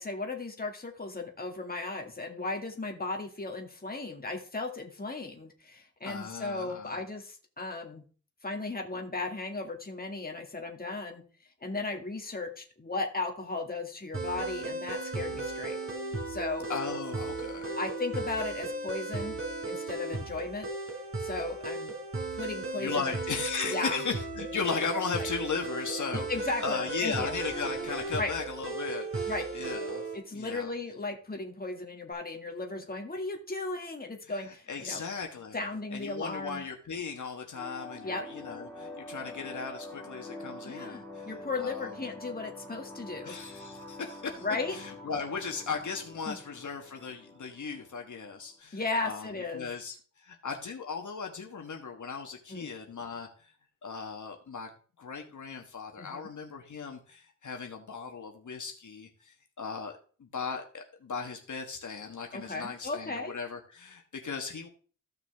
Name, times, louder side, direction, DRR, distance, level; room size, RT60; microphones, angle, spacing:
voice 1, 0.0-8.0 8.4-11.2 11.6-15.8 16.3-16.7 17.8-19.4 19.6-20.7 21.2-21.9 22.3-23.2 23.7-24.0 25.2-25.3 26.1-27.3 28.2-28.3 29.3-29.5 30.1-35.0 35.5-36.6 38.0-38.2 40.6-43.4 44.4-44.8 46.3-46.4 48.7-49.7 52.5-52.7 56.0-56.3 62.3-63.4, left 3 dB, 30° left, 2 dB, 2.0 m, -36 dB
voice 2, 6.0-7.0 16.7-17.8 22.8-26.3 26.6-30.7 34.3-35.6 35.9-41.3 41.5-42.0 43.2-44.4 44.7-53.5 53.8-54.7 55.0-64.7, left 5 dB, 70° left, 3 dB, 1.4 m, -37 dB
sound 1, 14.1-30.2, right 2 dB, 45° right, 3.9 m, -36 dB
sound 2, 37.5-48.5, left 2 dB, 5° left, 3.1 m, -46 dB
14.5 x 5.9 x 3.5 m, 0.40 s
wide cardioid pair, 85°, 31 cm